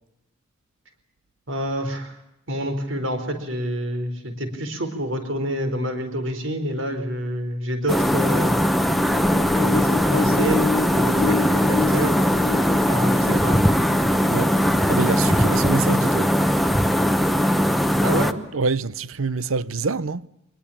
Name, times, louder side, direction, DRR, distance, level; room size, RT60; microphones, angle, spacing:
voice 1, 1.5-2.2 2.5-8.6 9.6-12.2 12.9-13.6 18.0-18.3, equal, 65° right, 4.4 m, -27 dB
sound 1, 7.9-18.3, equal, ahead, 0.9 m, -20 dB
sound 2, 8.9-16.4, left 5 dB, 80° left, 1.7 m, -30 dB
voice 2, 14.9-16.3 18.5-20.2, right 4 dB, 85° right, 0.8 m, -26 dB
24.5 x 21.0 x 8.7 m
head